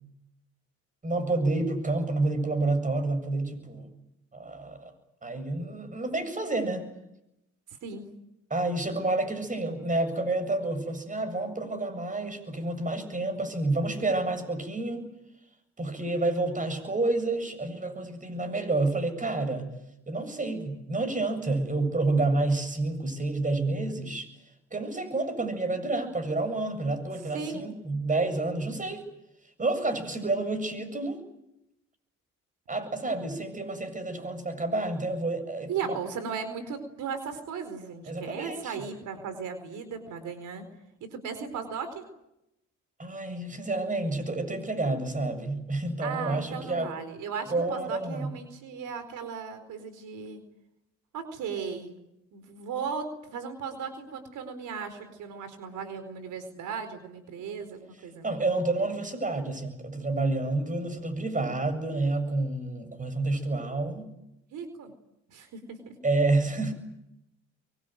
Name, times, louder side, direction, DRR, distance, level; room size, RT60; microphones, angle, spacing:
voice 1, 1.0-3.9 4.3-4.9 5.2-6.8 8.5-15.1 15.8-19.7 20.1-24.3 24.7-29.0 29.6-31.2 32.7-36.0 38.1-38.7 43.0-46.9 47.5-48.3 58.2-64.1 66.0-66.7, right 2 dB, 25° right, 9 dB, 7.5 m, -29 dB
voice 2, 35.7-40.6 41.1-42.1 46.0-50.4 51.1-52.0 52.3-58.4 64.5-64.9 65.3-65.9, right 6 dB, 80° right, 10 dB, 4.5 m, -36 dB
24.0 x 23.5 x 9.4 m, 0.85 s
cardioid pair, 90°, 30 cm